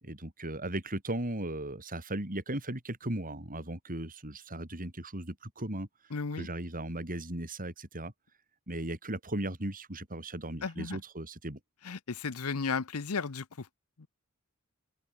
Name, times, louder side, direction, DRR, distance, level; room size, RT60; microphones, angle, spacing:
voice 1, 0.0-5.9 6.4-8.1 8.7-11.6, right 1 dB, 40° right, 5.1 m, -37 dB
voice 2, 6.1-6.5 10.6-11.0 11.8-13.7 14.0-14.1, left 5 dB, 70° left, 0.8 m, -34 dB
open air
head